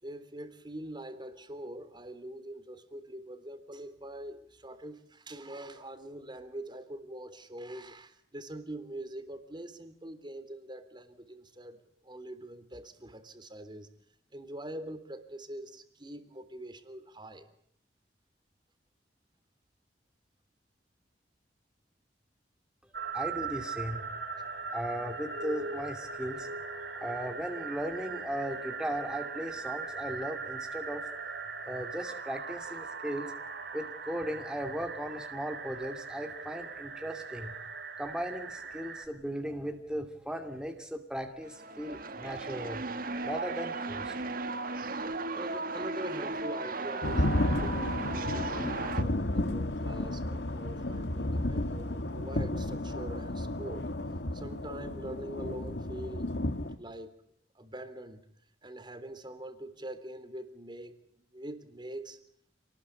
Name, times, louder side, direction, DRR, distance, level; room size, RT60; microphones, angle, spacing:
voice 1, 0.0-11.8 12.0-13.9 14.3-17.5 45.3-53.9 54.3-56.3 56.7-57.1 57.5-58.2 58.6-60.9 61.3-62.2, right 1 dB, 25° right, 11 dB, 3.3 m, -43 dB
sound 1, 22.9-39.1, right 4 dB, 75° right, 4.9 m, -40 dB
voice 2, 23.1-26.5 27.0-31.0 31.7-33.4 33.7-37.5 38.0-44.1, equal, 5° right, 5 dB, 2.5 m, -37 dB
sound 2, 41.4-49.0, right 3 dB, 55° right, 1.7 m, -36 dB
sound 3, 47.0-56.8, left 1 dB, 75° left, 1.9 m, -32 dB
28.5 x 20.0 x 8.5 m, 0.69 s
head